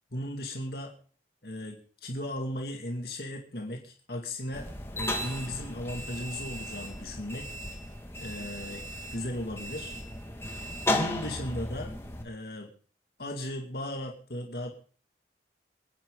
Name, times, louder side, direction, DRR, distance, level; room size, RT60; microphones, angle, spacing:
voice 1, 0.1-0.9 1.4-4.7 4.9-7.5 8.2-10.0 10.9-11.9 12.2-12.7 13.2-14.7, left 1 dB, 60° left, 1 dB, 2.4 m, -36 dB
sound 1, 4.5-12.2, left 1 dB, 15° left, 2.1 m, -35 dB
27.0 x 9.6 x 3.9 m, 0.42 s
head